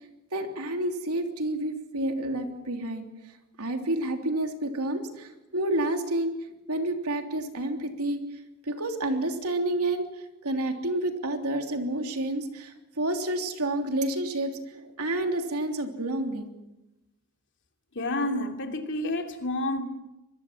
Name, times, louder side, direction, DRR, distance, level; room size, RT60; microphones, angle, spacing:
voice 1, 0.3-3.0 3.6-6.3 6.7-8.2 8.6-10.0 10.4-16.5, right 1 dB, 85° right, 5 dB, 3.3 m, -29 dB
voice 2, 17.9-19.8, left 1 dB, 55° left, 5 dB, 2.9 m, -29 dB
26.0 x 21.5 x 7.6 m, 0.97 s
head